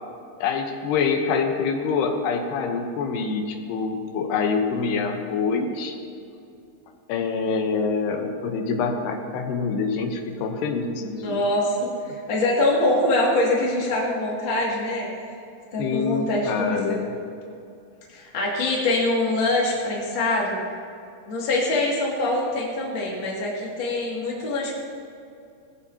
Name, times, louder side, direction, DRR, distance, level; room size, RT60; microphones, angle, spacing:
voice 1, 0.4-5.9 7.1-11.4 15.8-17.1, left 5 dB, 85° left, 3 dB, 3.1 m, -25 dB
voice 2, 11.0-11.8 12.3-15.1 15.7-17.0 18.1-20.6 21.3-24.7, left 2 dB, 35° left, -4 dB, 2.5 m, -24 dB
20.0 x 14.0 x 2.9 m, 2.5 s
omnidirectional pair, 4.6 m